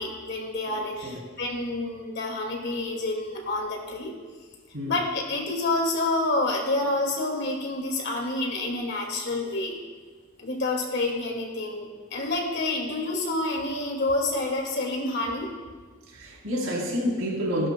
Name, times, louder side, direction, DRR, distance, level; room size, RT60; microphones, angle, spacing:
voice 1, 0.0-4.2 4.9-9.8 10.4-15.5, left 2 dB, 55° left, 1 dB, 2.0 m, -28 dB
voice 2, 16.1-17.7, equal, 80° right, -3 dB, 3.3 m, -28 dB
17.0 x 11.0 x 2.2 m, 1.5 s
head